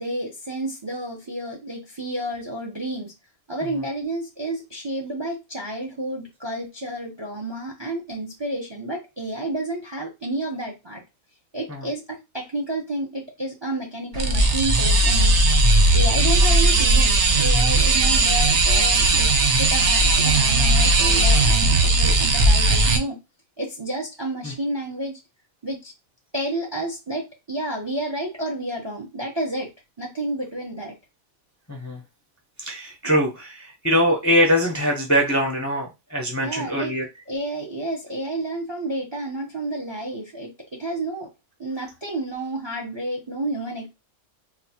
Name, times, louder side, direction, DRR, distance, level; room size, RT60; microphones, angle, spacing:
voice 1, 0.0-3.1 3.5-11.0 11.5-15.4 15.9-19.3 19.6-23.2 23.6-25.2 25.6-25.9 26.3-29.7 30.0-31.0 33.0-33.1 36.4-36.9 37.3-41.3 41.6-43.9, right 1 dB, 30° right, 0.5 m, -30 dB
sound 1, 14.1-23.0, right 2 dB, 60° right, 0.9 m, -17 dB
voice 2, 31.7-32.0 32.6-37.0, equal, 20° left, 0.5 m, -22 dB
4.0 x 2.3 x 2.8 m
omnidirectional pair, 1.5 m